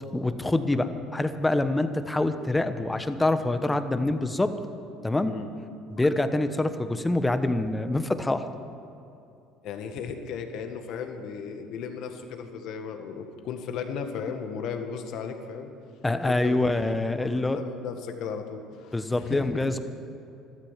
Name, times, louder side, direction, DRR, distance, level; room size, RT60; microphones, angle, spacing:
voice 1, 0.1-4.5 5.0-5.4 5.9-8.5 16.0-17.6 18.9-19.8, left 2 dB, 10° left, 10 dB, 1.0 m, -25 dB
voice 2, 9.6-15.7 16.3-16.8 17.2-19.5, left 6 dB, 65° left, 6 dB, 1.7 m, -36 dB
13.0 x 13.0 x 7.4 m, 2.7 s
supercardioid pair, 90°, 0 cm